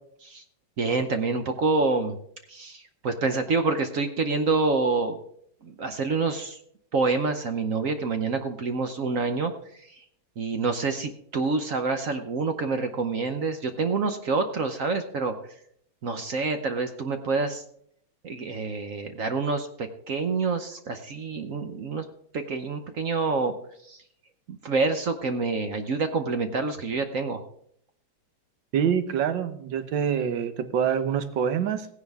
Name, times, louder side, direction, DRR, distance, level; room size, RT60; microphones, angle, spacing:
voice 1, 0.8-2.2 2.5-5.2 5.6-6.6 6.9-10.0 10.4-15.4 16.0-17.6 18.2-22.1 22.3-23.5 23.8-24.0 24.5-27.4, right 4 dB, 55° right, 7 dB, 1.0 m, -27 dB
voice 2, 28.7-31.9, right 8 dB, 75° right, 11 dB, 1.6 m, -26 dB
16.5 x 9.7 x 3.5 m, 0.67 s
omnidirectional pair, 2.1 m